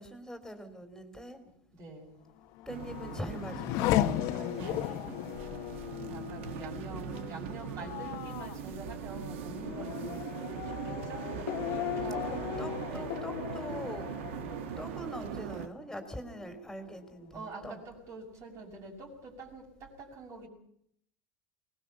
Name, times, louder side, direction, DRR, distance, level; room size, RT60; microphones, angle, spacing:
voice 1, 0.0-1.4 2.7-4.1 6.7-8.2 12.3-14.2 14.8-17.8, equal, ahead, 5 dB, 3.7 m, -43 dB
voice 2, 1.8-2.2 4.3-5.4 6.1-10.2 10.6-11.2 11.7-12.5 12.8-13.1 14.4-14.7 17.3-20.5, right 2 dB, 50° right, -4 dB, 6.4 m, -45 dB
Race car auto racing / Accelerating revving vroom, 2.4-15.6 16.0-16.7, left 13 dB, 60° left, 1.4 m, -36 dB
sound 1, 2.7-15.7, right 8 dB, 80° right, 1.6 m, -41 dB
22.5 x 19.5 x 7.1 m, 0.68 s
supercardioid pair, 105°, 6 cm